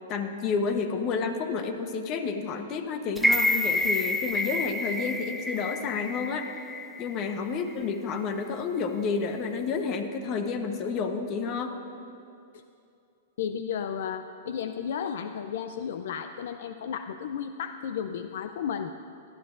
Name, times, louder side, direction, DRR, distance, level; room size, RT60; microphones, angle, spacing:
voice 1, 0.1-6.7 7.0-11.8, left 5 dB, 35° left, 7 dB, 0.9 m, -30 dB
sound 1, 3.2-7.3 7.7-7.8, left 1 dB, ahead, 0.5 m, -28 dB
voice 2, 13.4-18.9, left 8 dB, 70° left, 9 dB, 0.4 m, -33 dB
18.0 x 12.5 x 2.5 m, 2.5 s
hypercardioid pair, 135°, 0 cm